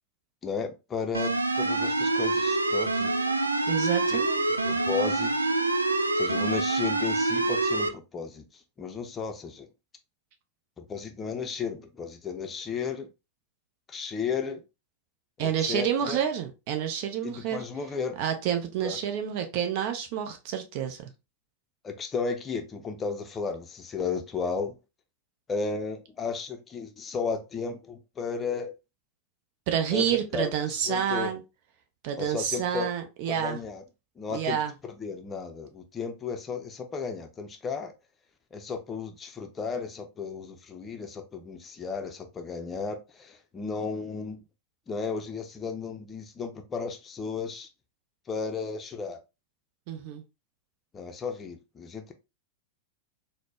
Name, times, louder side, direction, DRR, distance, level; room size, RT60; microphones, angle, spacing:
voice 1, 0.4-3.1 4.5-5.5 6.2-9.7 10.8-13.1 13.9-14.6 15.4-16.2 17.2-18.2 18.8-19.0 21.8-24.7 25.5-28.7 29.9-31.3 32.2-32.9 33.3-33.8 34.2-37.9 38.5-44.4 44.9-47.7 48.3-49.2 50.9-52.1, left 5 dB, 20° left, 0.5 m, -34 dB
sound 1, 1.1-7.9, right 2 dB, 80° right, 0.3 m, -26 dB
voice 2, 3.7-4.5 15.4-17.6 18.2-21.1 29.7-31.4 32.0-33.6 34.3-34.7 49.9-50.2, right 9 dB, 45° right, 0.6 m, -29 dB
4.1 x 2.1 x 3.0 m
figure-of-eight pair, 90°, 0 cm